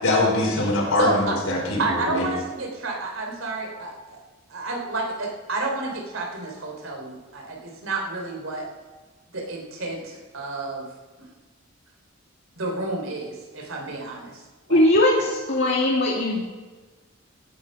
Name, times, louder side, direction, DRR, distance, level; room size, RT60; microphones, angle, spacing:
voice 1, 0.0-2.3, left 2 dB, 85° left, -4 dB, 5.0 m, -23 dB
voice 2, 1.0-1.3 1.8-4.2 4.5-8.7 9.3-10.9 12.6-14.4 14.7-14.8 15.2-15.3, right 2 dB, 75° right, 1 dB, 3.2 m, -30 dB
voice 3, 14.7-16.4, left 1 dB, 60° left, -3 dB, 1.9 m, -20 dB
17.0 x 8.7 x 5.3 m, 1.3 s
head